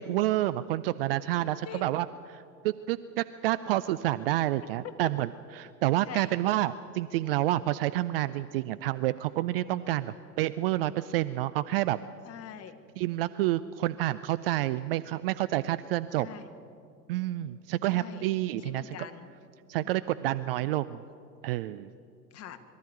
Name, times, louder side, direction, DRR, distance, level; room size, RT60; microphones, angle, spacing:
voice 1, 0.0-5.3 5.6-12.0 13.0-16.3 17.1-19.0 19.7-21.0 21.4-21.9, right 15 dB, 40° right, 14 dB, 0.4 m, -29 dB
voice 2, 1.4-1.9 4.8-4.9 6.0-6.3 10.0-10.2 12.2-12.8 16.2-16.5 17.9-18.3 18.6-19.3 19.8-20.1 22.3-22.6, left 9 dB, 30° left, 8 dB, 1.5 m, -44 dB
22.5 x 13.0 x 9.2 m, 2.5 s
figure-of-eight pair, 90°, 48 cm